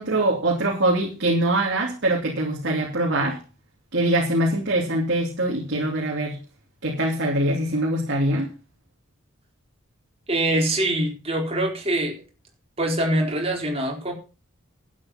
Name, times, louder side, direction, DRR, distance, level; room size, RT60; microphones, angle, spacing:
voice 1, 0.0-3.4 3.9-6.4 6.8-8.5, right 1 dB, 55° right, -1 dB, 2.7 m, -23 dB
voice 2, 10.3-12.2 12.8-14.1, right 1 dB, 30° right, 0 dB, 4.2 m, -24 dB
12.0 x 9.0 x 5.7 m, 0.34 s
head